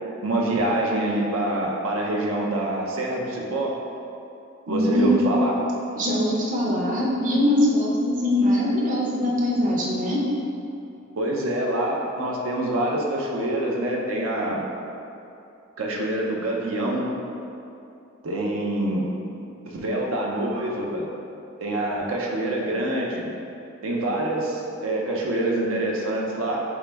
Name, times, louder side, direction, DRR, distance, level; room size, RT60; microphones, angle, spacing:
voice 1, 0.2-3.7 4.7-5.5 11.2-14.6 15.8-17.1 18.2-19.1 19.7-21.1 21.6-23.3 23.8-26.6, right 1 dB, 90° right, -2 dB, 0.6 m, -26 dB
voice 2, 4.7-5.3 5.9-10.2, left 1 dB, 40° right, -4 dB, 0.6 m, -22 dB
4.6 x 3.0 x 3.3 m, 2.7 s
head